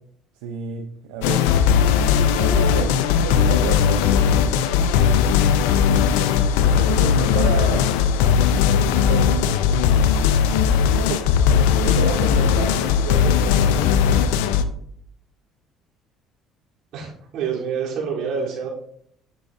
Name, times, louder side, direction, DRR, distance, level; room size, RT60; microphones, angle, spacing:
voice 1, 0.4-1.5 2.4-4.5 6.6-7.9 9.0-9.7 10.8-14.2, right 6 dB, 90° right, 5 dB, 0.7 m, -31 dB
sound 1, 1.2-14.6, left 7 dB, 85° left, 0.5 m, -18 dB
voice 2, 16.9-18.7, right 6 dB, 70° right, -5 dB, 3.5 m, -27 dB
10.5 x 6.3 x 2.7 m, 0.67 s
supercardioid pair, 75°, 0 cm